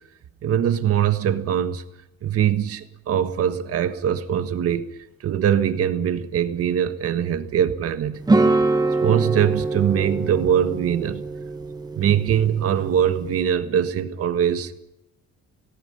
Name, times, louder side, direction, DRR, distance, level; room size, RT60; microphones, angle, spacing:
voice 1, 0.4-1.8 2.2-4.9 5.2-8.2 9.0-11.2 11.9-14.7, right 9 dB, 45° right, 1.6 m, -22 dB
sound 1, 8.3-13.4, right 3 dB, 10° right, 1.1 m, -24 dB
28.0 x 18.5 x 5.6 m
cardioid pair, 165°, 32 cm